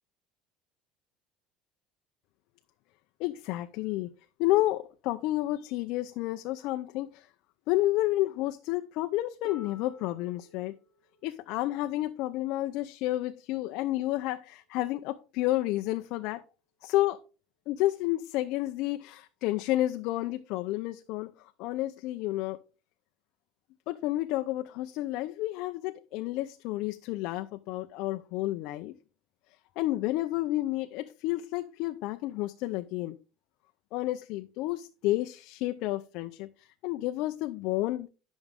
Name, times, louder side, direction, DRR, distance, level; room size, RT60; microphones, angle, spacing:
voice 1, 3.2-4.1 4.4-7.3 7.7-10.7 11.2-16.4 16.8-17.2 17.7-21.3 21.6-22.6 23.9-28.9 29.8-33.2 33.9-38.1, left 16 dB, 55° left, 0.5 m, -30 dB
Harp, 9.4-15.2 16.3-16.4, left 2 dB, 15° left, 1.3 m, -55 dB
11.0 x 6.1 x 3.6 m
cardioid pair, 170°, 0 cm